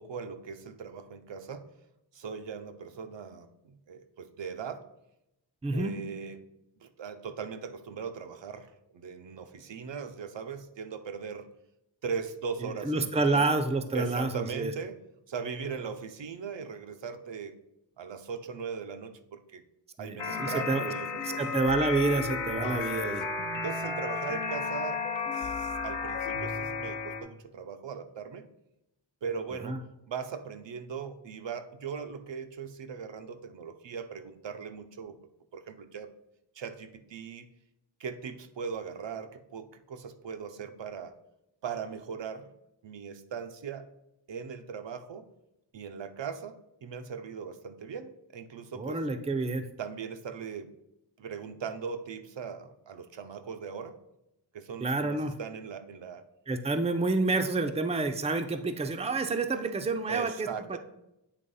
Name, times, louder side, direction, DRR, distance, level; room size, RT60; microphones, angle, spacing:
voice 1, 0.0-1.7 2.1-4.8 5.7-6.4 6.8-11.5 12.0-13.5 13.9-15.0 15.3-17.5 18.0-19.6 20.0-21.4 22.6-23.2 23.5-25.0 25.3-28.5 29.2-29.8 30.1-35.2 35.5-36.1 36.6-37.5 38.0-41.1 41.6-42.5 42.8-43.9 44.3-45.3 45.7-49.0 49.8-50.7 51.2-54.0 54.5-56.2 59.5-59.7 60.1-60.8, right 6 dB, 70° right, 8 dB, 0.7 m, -39 dB
voice 2, 5.6-6.0 12.8-14.7 20.0-20.9 21.2-23.3 29.6-29.8 48.8-49.7 54.8-55.3 56.5-60.8, right 3 dB, 15° right, 7 dB, 0.5 m, -29 dB
sound 1, 20.2-27.2, left 4 dB, 80° left, 1.1 m, -33 dB
8.2 x 3.0 x 5.4 m, 0.86 s
wide cardioid pair, 90°, 46 cm